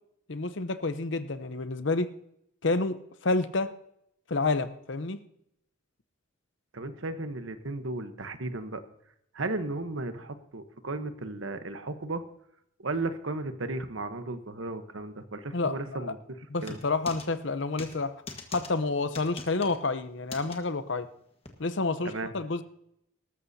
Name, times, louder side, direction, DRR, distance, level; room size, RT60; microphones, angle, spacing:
voice 1, 0.3-2.1 2.6-3.0 3.2-3.7 4.3-5.2 15.5-16.1 16.5-18.1 18.5-21.1 21.6-22.6, left 3 dB, 60° left, 11 dB, 0.8 m, -29 dB
voice 2, 6.7-8.8 9.3-12.2 12.8-16.2 16.6-16.8 22.0-22.3, right 2 dB, 70° right, 9 dB, 1.1 m, -35 dB
sound 1, 16.6-17.3 17.8-18.0 18.3-18.7 19.1-19.8 20.3-20.6 21.5-21.6, left 3 dB, 30° left, 1.4 m, -41 dB
19.0 x 13.5 x 2.8 m, 0.75 s
head